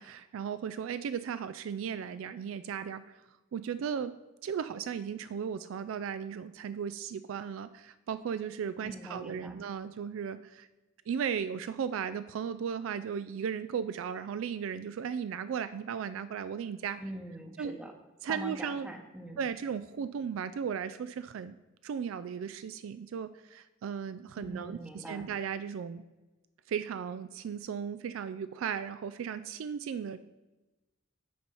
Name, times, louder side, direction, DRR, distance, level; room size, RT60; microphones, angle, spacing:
voice 1, 0.0-3.0 3.5-4.1 4.4-10.7 11.1-17.0 17.6-17.7 18.2-18.9 19.4-21.6 21.8-26.0 26.7-30.2, right 7 dB, 80° right, 13 dB, 0.3 m, -36 dB
voice 2, 8.8-9.6 17.0-17.9 18.3-19.4 24.4-25.3, right 1 dB, 5° right, 4 dB, 0.8 m, -43 dB
8.4 x 4.4 x 5.4 m, 1.1 s
head